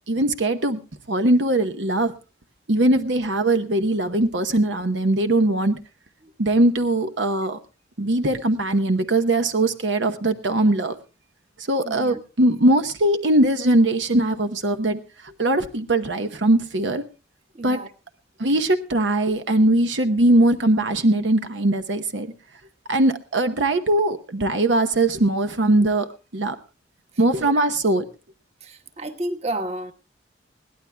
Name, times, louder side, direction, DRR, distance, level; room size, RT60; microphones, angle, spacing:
voice 1, 0.1-0.8 1.1-2.1 2.7-5.8 6.4-7.6 8.0-11.0 11.6-17.0 17.6-17.8 18.4-22.3 22.9-26.6 27.2-28.1, right 1 dB, 75° right, 1.0 m, -21 dB
voice 2, 11.8-12.2 17.5-17.9 27.4-27.7 28.6-29.9, right 1 dB, 35° right, 1.3 m, -31 dB
21.5 x 16.5 x 2.2 m
head